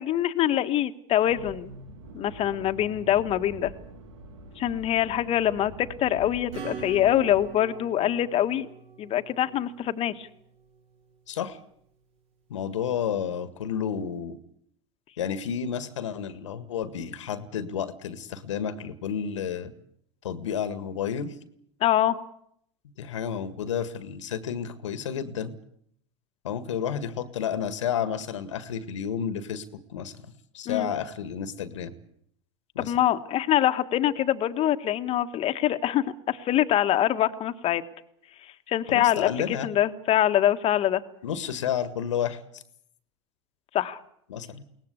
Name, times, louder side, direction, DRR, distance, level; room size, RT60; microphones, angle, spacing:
voice 1, 0.0-1.7 2.1-3.7 4.6-8.7 9.0-10.3 21.8-22.2 30.6-30.9 32.8-37.8 38.7-41.0 43.7-44.0, left 12 dB, 40° left, 9 dB, 1.5 m, -24 dB
Accelerating revving vroom, 1.2-7.5, right 2 dB, 75° right, 2.9 m, -45 dB
Acoustic guitar / Strum, 6.5-10.8, right 5 dB, 45° right, 6.3 m, -43 dB
voice 2, 11.3-11.6 12.5-14.4 15.2-19.7 20.2-21.4 23.0-25.5 26.4-30.1 30.5-31.9 32.7-32.9 38.9-39.7 41.2-42.6 44.3-44.6, left 8 dB, 80° left, 12 dB, 1.8 m, -31 dB
22.0 x 19.0 x 8.3 m, 0.69 s
hypercardioid pair, 90°, 16 cm